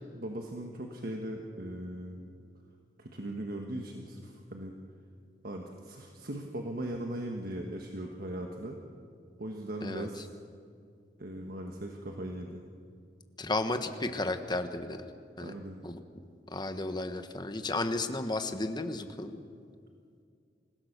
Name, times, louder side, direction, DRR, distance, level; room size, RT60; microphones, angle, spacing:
voice 1, 0.1-2.3 3.0-4.7 5.4-8.8 9.4-10.2 11.2-12.6 15.4-15.8, right 1 dB, 55° right, 2 dB, 1.4 m, -39 dB
voice 2, 13.4-15.0 15.4-15.5 15.8-16.0 16.5-19.4, left 2 dB, 25° left, 8 dB, 1.2 m, -33 dB
26.0 x 16.5 x 6.7 m, 2.3 s
head